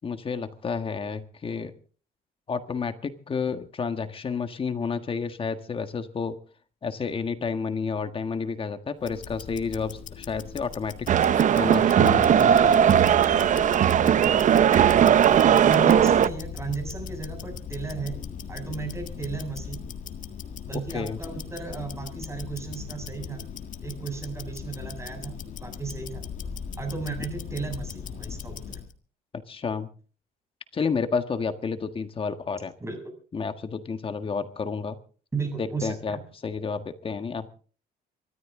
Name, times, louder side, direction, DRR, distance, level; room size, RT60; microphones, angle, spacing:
voice 1, 0.0-1.7 2.5-6.4 6.8-11.1 11.6-12.9 20.9-21.2 29.3-29.9 30.7-32.7 33.3-35.0 35.6-37.5, left 5 dB, 30° left, 9 dB, 1.6 m, -30 dB
Tick-tock, 9.0-28.9, left 7 dB, 50° left, 1.8 m, -39 dB
sound 1, 11.1-16.3, right 9 dB, 50° right, 0.8 m, -18 dB
voice 2, 15.6-18.2 18.5-19.8 20.7-23.5 23.8-26.3 26.8-28.8 32.8-33.0 35.3-36.2, right 4 dB, 15° right, 5 dB, 7.2 m, -34 dB
24.5 x 13.5 x 3.8 m, 0.40 s
cardioid pair, 110°, 17 cm